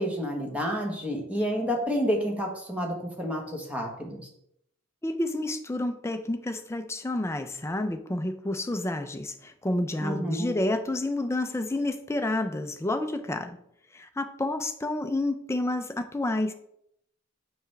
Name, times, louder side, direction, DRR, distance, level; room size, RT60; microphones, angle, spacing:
voice 1, 0.0-4.3 10.0-10.5, equal, 5° right, 1.1 m, -29 dB
voice 2, 5.0-13.6 13.9-16.5, left 1 dB, 15° left, 0.4 m, -29 dB
7.0 x 5.7 x 3.3 m
head